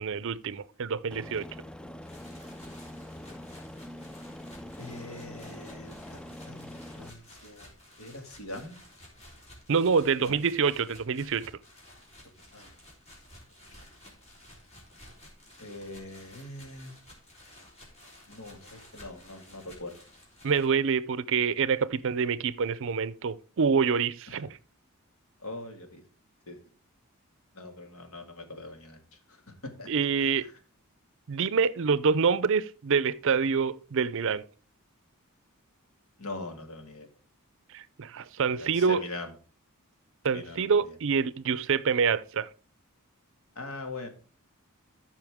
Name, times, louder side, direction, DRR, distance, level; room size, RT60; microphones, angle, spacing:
voice 1, 0.0-1.5 9.7-11.5 20.4-24.6 29.9-30.5 31.3-34.4 37.7-39.0 40.2-42.5, right 5 dB, 60° right, 0.5 m, -26 dB
Aircraft, 1.1-7.1, left 1 dB, 5° left, 0.3 m, -44 dB
sound 1, 2.0-20.7, left 1 dB, 30° left, 3.7 m, -53 dB
voice 2, 4.8-7.7 8.0-8.8 10.2-10.4 12.5-12.7 15.6-16.9 18.3-20.0 25.4-26.0 26.5-26.6 27.5-29.0 29.3-29.9 36.2-37.1 38.5-39.3 40.3-40.7 43.6-44.1, left 2 dB, 70° left, 2.0 m, -42 dB
14.0 x 5.7 x 3.5 m
head